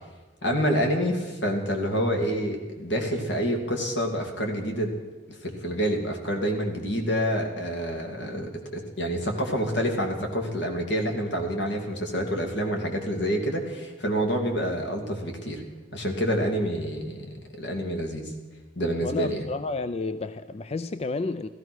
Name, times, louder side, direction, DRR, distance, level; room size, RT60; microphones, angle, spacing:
voice 1, 0.4-4.9 5.4-15.6 15.9-17.3 17.6-18.3 18.8-19.4, equal, 80° left, 2.6 m, -27 dB
voice 2, 19.0-21.5, left 3 dB, 35° left, 0.4 m, -31 dB
15.5 x 14.0 x 6.2 m
head